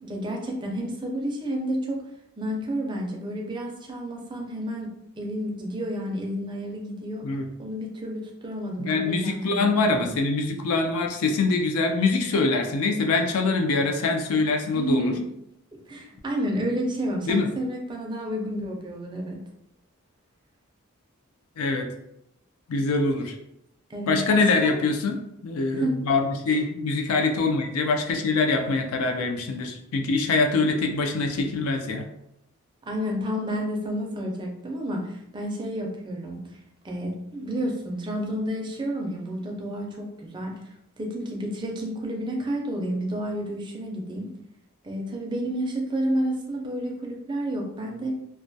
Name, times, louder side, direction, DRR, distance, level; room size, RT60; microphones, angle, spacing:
voice 1, 0.0-2.0 2.4-7.3 7.6-10.0 14.7-15.2 15.9-19.4 23.9-24.8 25.7-26.0 26.5-26.6 32.8-36.4 36.8-40.5 41.0-44.3 44.8-48.1, equal, 20° right, 0 dB, 0.4 m, -30 dB
voice 2, 8.8-15.1 17.3-17.5 21.6-21.9 22.7-23.3 24.1-32.1, left 3 dB, 80° left, 4 dB, 0.4 m, -24 dB
2.2 x 2.2 x 2.6 m, 0.79 s
head